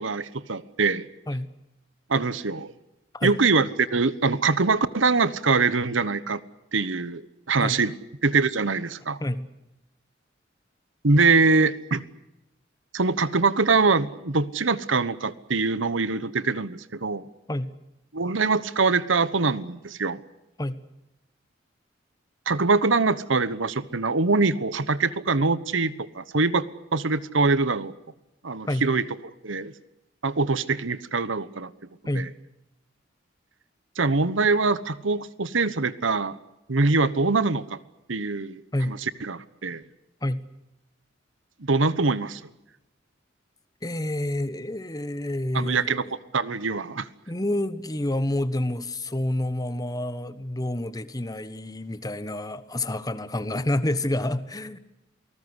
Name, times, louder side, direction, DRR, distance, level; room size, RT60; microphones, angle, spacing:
voice 1, 0.0-1.1 2.1-2.7 3.2-6.4 6.7-7.2 7.5-7.9 8.2-9.2 11.0-12.0 12.9-17.2 18.1-20.2 22.5-27.9 28.4-29.0 29.4-29.7 30.2-31.7 32.1-32.3 34.0-36.4 36.7-37.8 38.1-39.8 41.6-42.4 45.5-46.0 46.3-47.1, right 4 dB, 80° right, 1.2 m, -23 dB
voice 2, 43.8-46.1 47.3-54.8, left 1 dB, 20° left, 1.2 m, -28 dB
29.0 x 19.5 x 8.1 m
head